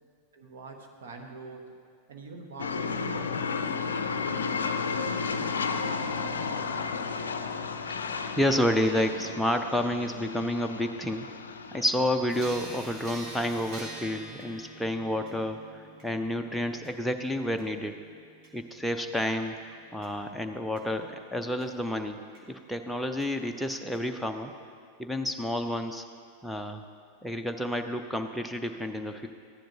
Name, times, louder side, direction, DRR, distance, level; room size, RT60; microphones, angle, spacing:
voice 1, 0.3-1.8 2.1-3.6 4.2-7.4, right 3 dB, 60° right, 3 dB, 1.0 m, -45 dB
sound 1, 2.6-13.2, left 5 dB, 70° left, 0.4 m, -33 dB
voice 2, 8.4-11.3 11.7-18.0 18.5-19.5 19.9-22.2 22.5-24.5 25.0-26.0 26.4-26.9 27.2-29.3, left 1 dB, ahead, 3 dB, 0.5 m, -30 dB
sound 2, 12.3-21.7 22.3-22.4 23.2-23.3 23.9-24.0, right 2 dB, 40° right, 1.6 m, -47 dB
14.0 x 10.0 x 2.7 m, 2.1 s
figure-of-eight pair, 90°, 0 cm